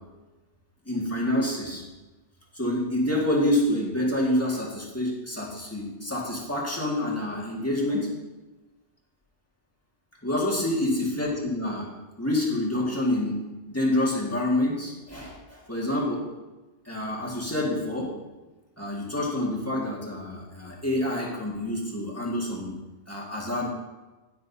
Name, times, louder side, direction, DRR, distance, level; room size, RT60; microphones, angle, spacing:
voice 1, 0.9-1.8 2.5-8.1 10.2-11.9 12.2-16.3 16.9-18.1 18.8-22.7 23.1-23.7, left 1 dB, 15° left, -4 dB, 1.9 m, -27 dB
10.5 x 10.0 x 2.7 m, 1.1 s
omnidirectional pair, 1.2 m